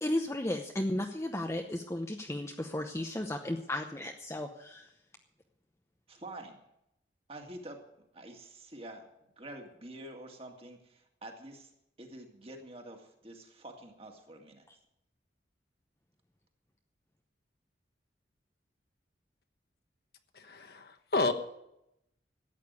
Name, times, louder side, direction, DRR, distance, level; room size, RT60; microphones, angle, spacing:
voice 1, 0.0-4.9, left 1 dB, 15° left, 4 dB, 0.8 m, -34 dB
voice 2, 6.1-6.6 7.3-7.8 8.1-11.7 12.0-14.6, right 1 dB, 30° right, 3 dB, 2.1 m, -47 dB
voice 3, 20.4-21.3, left 3 dB, 60° left, 7 dB, 1.2 m, -30 dB
13.5 x 9.0 x 8.2 m, 0.82 s
head